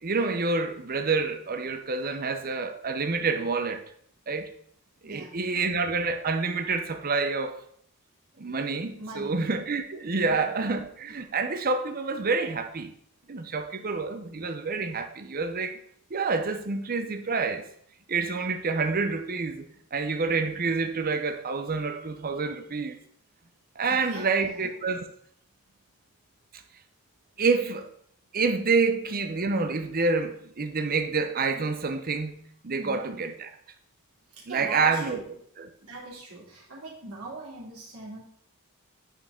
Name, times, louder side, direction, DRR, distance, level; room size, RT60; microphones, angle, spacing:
voice 1, 0.0-3.8 4.3-4.5 5.0-7.6 8.4-12.9 13.3-15.8 16.1-17.6 18.1-23.0 23.8-25.1 27.4-27.9 28.3-32.4 32.6-33.5 34.5-35.2 35.6-35.7, right 4 dB, 40° right, 0.7 m, -28 dB
voice 2, 5.0-5.4 9.0-9.4 10.2-10.4 23.8-24.6 32.8-33.1 34.3-35.3 35.8-38.2, right 2 dB, 90° right, 3.1 m, -42 dB
9.2 x 4.6 x 3.7 m
head